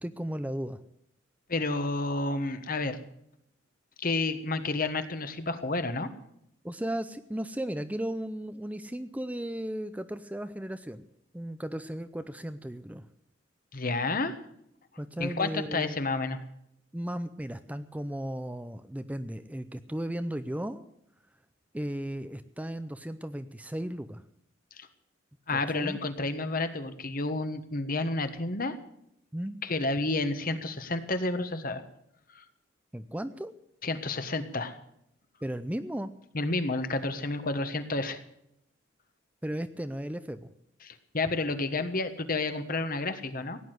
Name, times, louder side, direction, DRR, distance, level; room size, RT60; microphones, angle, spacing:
voice 1, 0.0-0.8 6.6-11.0 11.3-13.1 15.0-16.0 16.9-20.8 21.7-24.2 25.5-26.0 29.3-29.6 32.9-33.5 35.4-36.1 39.4-40.5, right 1 dB, 5° right, 11 dB, 0.5 m, -35 dB
voice 2, 1.5-3.0 4.0-6.1 13.7-14.3 15.2-16.4 24.8-24.9 25.5-28.8 29.6-31.8 32.3-32.5 33.8-34.8 36.3-38.2 40.8-43.6, left 2 dB, 45° left, 9 dB, 1.4 m, -30 dB
16.5 x 9.8 x 7.9 m, 0.76 s
head